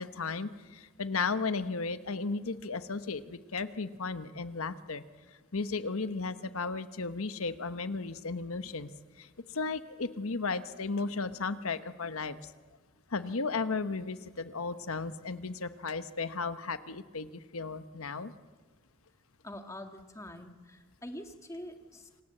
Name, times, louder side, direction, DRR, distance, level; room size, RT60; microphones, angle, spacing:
voice 1, 0.0-5.0 5.5-8.9 9.2-12.5 13.1-18.3, left 4 dB, 80° left, 12 dB, 1.1 m, -35 dB
voice 2, 19.4-22.2, left 1 dB, 15° left, 5 dB, 1.6 m, -45 dB
27.5 x 18.5 x 7.8 m, 1.4 s
head